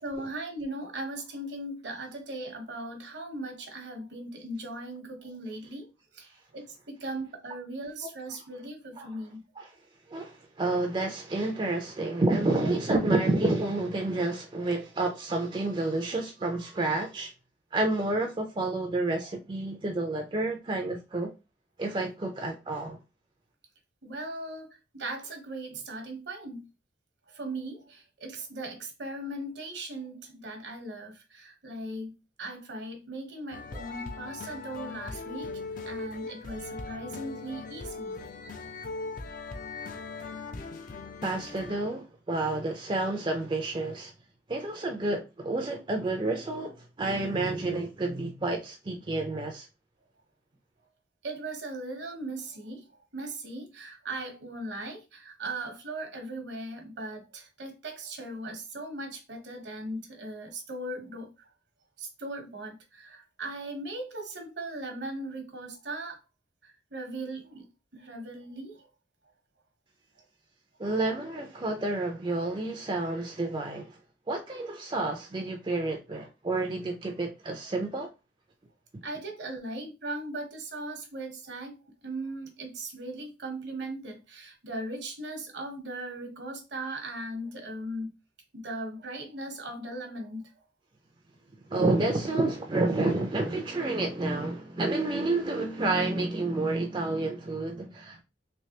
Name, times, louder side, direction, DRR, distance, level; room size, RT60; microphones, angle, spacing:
voice 1, 0.0-5.9 6.1-9.4 24.0-26.7 27.3-32.1 32.4-35.5 35.9-38.2 51.2-52.9 53.1-61.3 62.0-66.2 66.6-67.6 67.9-68.9 79.0-81.8 82.0-88.1 88.5-90.5, right 2 dB, 70° right, 1.0 m, -38 dB
voice 2, 10.1-17.3 17.7-21.3 21.8-23.0 41.2-44.1 44.5-49.7 70.8-74.0 74.3-78.1 91.7-98.2, right 2 dB, 25° right, 0.4 m, -29 dB
Menu Music, 33.5-41.9, left 3 dB, 45° left, 0.4 m, -39 dB
3.3 x 3.0 x 2.8 m
head